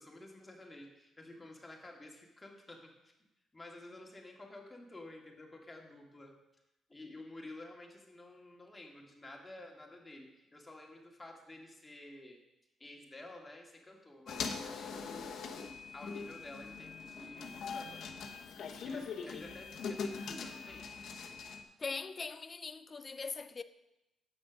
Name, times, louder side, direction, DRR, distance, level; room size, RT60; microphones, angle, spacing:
voice 1, 0.0-3.1 3.5-6.4 6.9-12.4 12.8-15.4 15.9-18.1 18.8-20.9, left 2 dB, 15° left, 2.0 m, -51 dB
sound 1, 14.3-21.6, left 5 dB, 65° left, 1.0 m, -42 dB
voice 2, 21.8-23.6, left 4 dB, 35° left, 0.4 m, -41 dB
7.7 x 6.1 x 6.2 m
cardioid pair, 90°, 0 cm